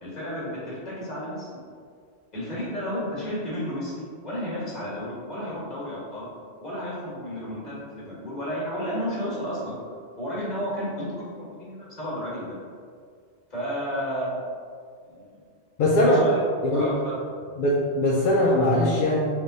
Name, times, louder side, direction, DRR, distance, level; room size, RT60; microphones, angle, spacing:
voice 1, 0.0-1.5 2.3-6.3 6.6-9.7 10.2-12.5 13.5-14.4 15.0-15.4 15.9-16.4 16.7-17.2, equal, 40° left, -7 dB, 1.5 m, -32 dB
voice 2, 15.8-16.2 16.6-16.9 17.6-19.2, left 1 dB, 60° left, -4 dB, 0.6 m, -21 dB
3.5 x 3.1 x 3.8 m, 2.1 s
omnidirectional pair, 1.2 m